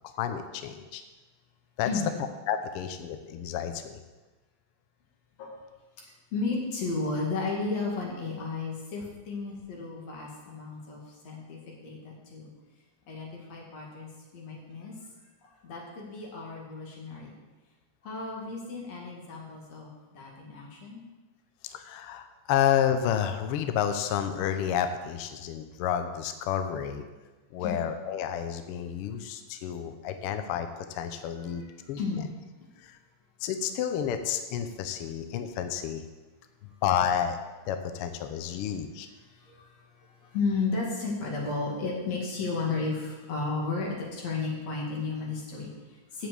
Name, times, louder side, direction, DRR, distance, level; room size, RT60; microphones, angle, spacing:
voice 1, 0.1-1.0 1.8-1.9 2.5-4.0 21.6-27.0 27.5-31.6 31.9-32.0 32.8-33.0 33.4-36.0 36.8-37.4 37.6-39.1, left 9 dB, 85° left, 8 dB, 1.2 m, -30 dB
voice 2, 6.3-12.5 13.1-14.9 15.4-17.3 18.0-21.0 27.6-27.9 31.5-31.6 32.0-32.2 39.3-46.3, left 4 dB, 60° left, -2 dB, 3.2 m, -33 dB
7.6 x 7.2 x 8.1 m, 1.2 s
omnidirectional pair, 3.5 m